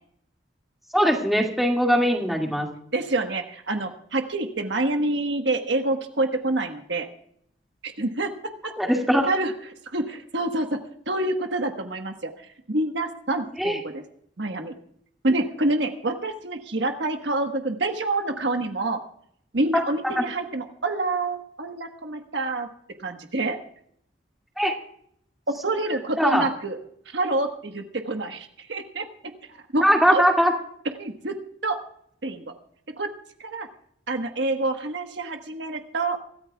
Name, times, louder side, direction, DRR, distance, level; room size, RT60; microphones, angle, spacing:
voice 1, 0.9-2.7 8.8-9.3 13.6-13.8 19.7-19.8 20.2-20.3 24.6-24.7 26.2-26.5 29.8-30.5, equal, ahead, 0 dB, 2.1 m, -20 dB
voice 2, 2.9-7.1 7.8-8.7 9.3-9.5 9.9-10.8 11.1-13.9 14.4-14.7 15.2-19.0 19.5-22.7 23.0-23.6 25.5-26.8 27.1-29.1 29.5-30.2 31.0-31.3 31.6-31.8 32.2-32.5 33.0-33.1 33.4-33.7 34.1-36.2, right 2 dB, 70° right, 5 dB, 1.3 m, -27 dB
25.0 x 14.0 x 2.3 m, 0.68 s
head